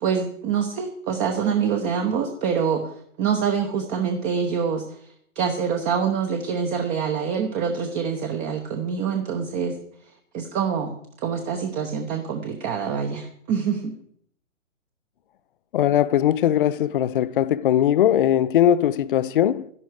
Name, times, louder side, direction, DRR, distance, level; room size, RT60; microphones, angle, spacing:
voice 1, 0.0-2.9 3.2-5.0 5.3-9.8 10.3-10.9 11.2-13.9, right 6 dB, 20° right, 1.0 m, -25 dB
voice 2, 15.7-19.7, left 11 dB, 40° left, 0.6 m, -20 dB
12.5 x 11.0 x 4.8 m
hypercardioid pair, 135°, 39 cm